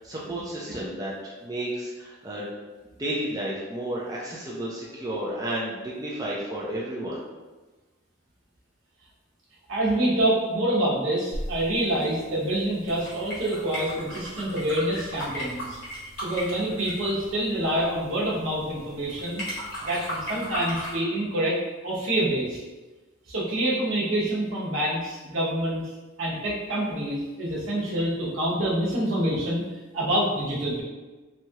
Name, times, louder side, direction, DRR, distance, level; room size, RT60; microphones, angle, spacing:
voice 1, 0.0-2.5 3.0-7.2, right 1 dB, 15° right, -6 dB, 0.4 m, -32 dB
voice 2, 9.7-15.8 16.2-19.4 19.8-21.6 21.8-22.6 23.3-25.8 26.2-29.6 29.9-30.8, right 1 dB, 75° right, -6 dB, 0.9 m, -26 dB
sound 1, 11.3-21.0, equal, 70° left, 1.2 m, -37 dB
3.0 x 2.3 x 2.8 m, 1.2 s
head